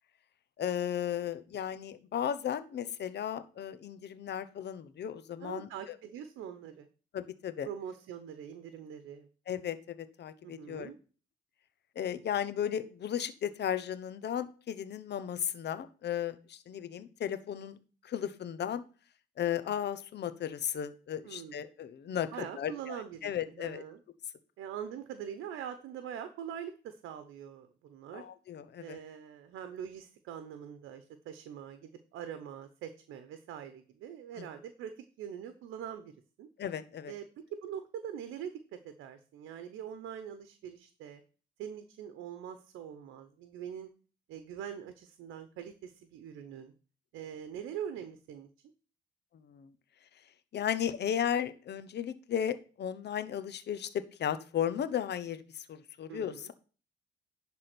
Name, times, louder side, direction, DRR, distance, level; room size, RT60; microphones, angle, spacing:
voice 1, 0.6-5.7 7.1-7.7 9.5-10.9 12.0-17.8 18.0-18.8 19.4-23.8 28.1-29.0 34.4-34.5 36.6-37.1 49.4-49.7 50.5-56.5, left 9 dB, 60° left, 12 dB, 1.0 m, -35 dB
voice 2, 5.4-6.9 7.6-9.3 10.4-11.0 21.2-21.6 22.3-24.0 24.6-28.2 28.8-36.1 36.4-36.5 37.1-41.2 41.6-43.9 44.3-46.7 47.1-48.5 56.1-56.5, right 9 dB, 90° right, 9 dB, 0.9 m, -43 dB
11.0 x 3.7 x 6.1 m, 0.38 s
cardioid pair, 90°, 20 cm